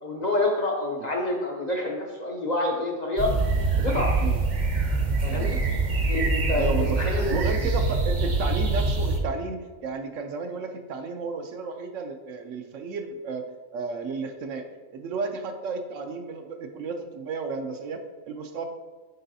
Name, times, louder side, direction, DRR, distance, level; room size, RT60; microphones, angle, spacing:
voice 1, 0.0-3.3 3.8-4.1 5.2-5.6 6.1-7.4, left 2 dB, 45° left, -1 dB, 0.6 m, -27 dB
sound 1, 3.2-9.2, right 3 dB, 45° right, 0.7 m, -24 dB
voice 2, 6.5-14.7 14.9-18.6, right 4 dB, 75° right, 6 dB, 0.9 m, -33 dB
8.0 x 4.7 x 2.7 m, 1.3 s
omnidirectional pair, 1.4 m